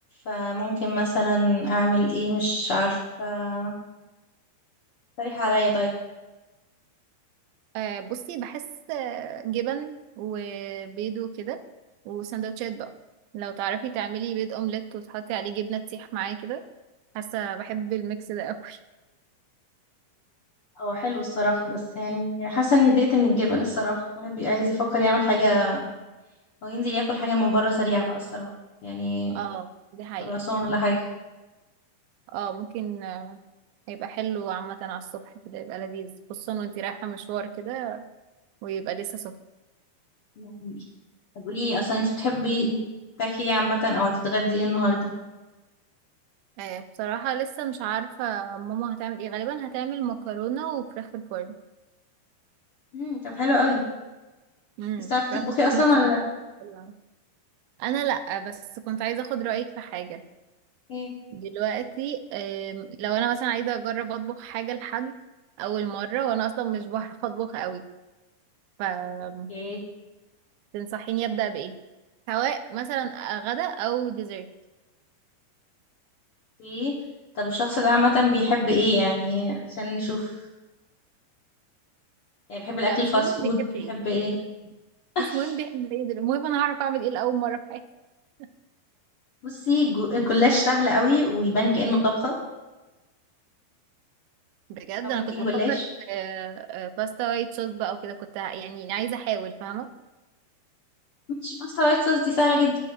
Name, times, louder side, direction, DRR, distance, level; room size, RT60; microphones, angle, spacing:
voice 1, 0.2-3.7 5.2-5.9 20.8-25.8 26.6-28.5 28.8-29.4 30.3-31.0 40.4-40.8 41.3-42.7 43.2-45.1 52.9-53.8 55.1-56.2 60.9-61.1 69.5-69.8 76.6-77.0 77.3-80.3 82.5-83.6 83.9-84.3 85.1-85.4 89.4-92.3 95.0-95.8 101.3-102.8, left 2 dB, 90° left, -4 dB, 1.2 m, -24 dB
voice 2, 7.7-8.6 8.9-11.6 12.1-12.9 13.3-16.6 17.2-18.8 29.3-30.3 32.3-33.4 33.9-38.0 38.6-39.3 46.6-51.5 54.8-56.1 56.6-56.9 57.8-60.2 61.3-65.1 65.6-67.8 68.8-69.5 70.7-71.8 72.3-74.5 82.9-83.9 84.6-84.7 85.2-87.8 94.7-95.8 96.1-99.9, right 10 dB, 85° right, 8 dB, 2.9 m, -31 dB
19.5 x 10.0 x 2.5 m, 1.1 s
omnidirectional pair, 5.0 m